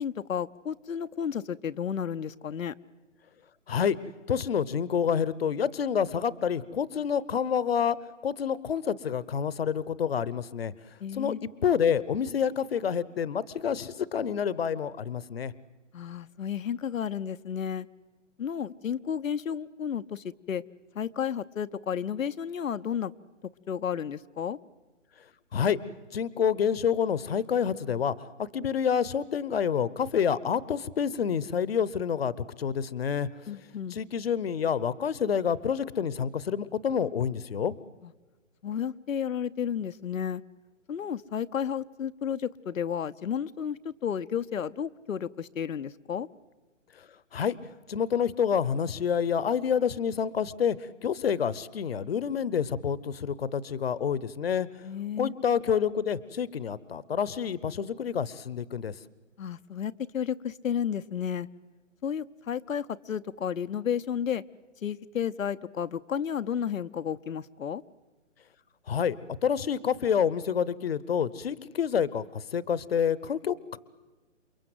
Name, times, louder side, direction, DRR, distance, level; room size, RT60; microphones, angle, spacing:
voice 1, 0.0-2.7 11.0-11.4 15.9-17.9 18.4-20.6 20.9-23.1 23.7-24.6 33.5-34.0 38.0-38.1 38.6-40.4 40.9-46.3 54.8-55.3 59.4-61.5 62.0-64.4 64.8-67.8, left 8 dB, 90° left, 12 dB, 0.9 m, -32 dB
voice 2, 3.7-4.0 4.3-8.0 8.2-10.7 11.1-15.5 25.5-25.8 26.1-33.3 33.9-37.7 46.9-47.6 47.9-54.7 55.2-58.9 68.9-73.8, left 7 dB, 50° left, 19 dB, 0.9 m, -28 dB
29.0 x 23.5 x 7.9 m, 1.2 s
hypercardioid pair, 170°, 38 cm